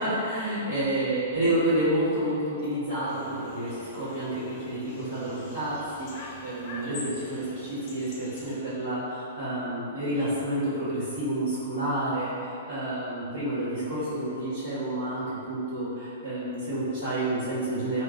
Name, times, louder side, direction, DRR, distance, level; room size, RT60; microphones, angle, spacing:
voice 1, 0.0-18.0, right 1 dB, 50° right, -16 dB, 1.5 m, -29 dB
sound 1, 3.1-8.6, left 2 dB, 30° left, 0.7 m, -44 dB
4.7 x 3.1 x 2.4 m, 2.6 s
figure-of-eight pair, 110°, 0 cm